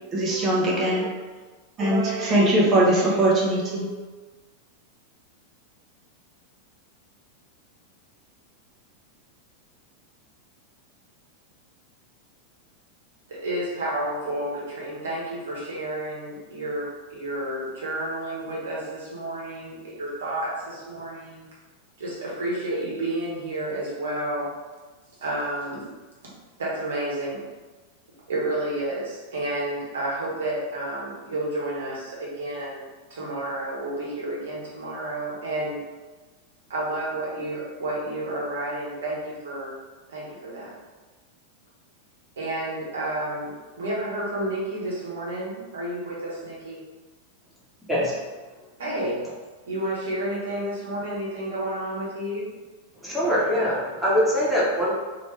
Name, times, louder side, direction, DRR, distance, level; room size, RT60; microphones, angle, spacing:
voice 1, 0.1-1.1 1.8-3.9, right 1 dB, 30° right, -4 dB, 1.0 m, -21 dB
voice 2, 13.3-21.4 22.0-24.5 25.2-25.9 26.6-27.4 28.3-35.8 36.7-39.8 40.1-40.7 42.4-46.8 48.8-49.3 49.7-52.5, right 1 dB, 65° right, -5 dB, 1.3 m, -30 dB
voice 3, 53.0-54.9, equal, 5° right, -8 dB, 1.3 m, -23 dB
3.2 x 2.9 x 3.3 m, 1.3 s
figure-of-eight pair, 90°, 0 cm